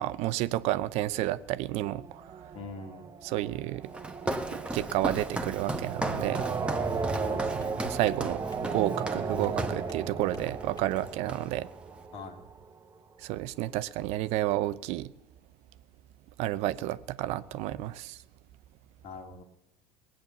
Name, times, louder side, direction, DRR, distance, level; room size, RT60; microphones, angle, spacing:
voice 1, 0.0-2.4 3.2-3.9 4.5-6.4 7.8-8.4 8.7-11.7 13.2-15.1 16.4-18.2, right 15 dB, 60° right, 0.6 m, -31 dB
sound 1, 1.8-12.6, right 5 dB, 30° right, 1.3 m, -36 dB
voice 2, 2.5-3.1 7.2-7.8 12.1-12.4 19.0-19.4, left 4 dB, 55° left, 2.4 m, -42 dB
Walk footsteps, 3.9-9.9 10.4-10.6 10.9-11.7, right 1 dB, 10° right, 1.4 m, -36 dB
sound 2, 7.0-11.1, left 2 dB, 35° left, 2.2 m, -53 dB
19.5 x 8.9 x 7.0 m
hypercardioid pair, 70°, 13 cm